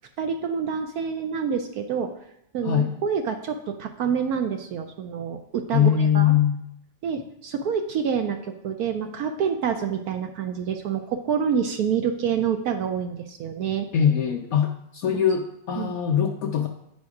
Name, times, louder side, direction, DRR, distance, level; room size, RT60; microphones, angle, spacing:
voice 1, 0.2-2.1 2.5-6.3 7.0-13.9 15.8-16.0, right 7 dB, 70° right, 5 dB, 0.9 m, -27 dB
voice 2, 5.7-6.6 13.9-16.7, left 9 dB, 75° left, 2 dB, 0.8 m, -22 dB
9.3 x 4.3 x 4.8 m, 0.80 s
omnidirectional pair, 2.0 m